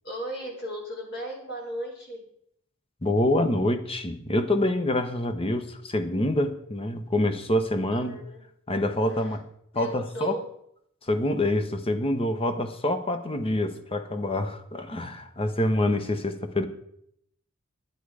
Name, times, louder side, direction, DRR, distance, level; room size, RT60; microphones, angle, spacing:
voice 1, 0.0-2.2 7.9-8.4 9.1-9.4 9.7-10.4, equal, 50° left, -1 dB, 3.7 m, -36 dB
voice 2, 3.0-8.2 8.7-9.4 9.7-10.4 11.1-16.7, left 1 dB, 25° left, 8 dB, 0.9 m, -26 dB
10.5 x 10.0 x 4.9 m, 0.72 s
head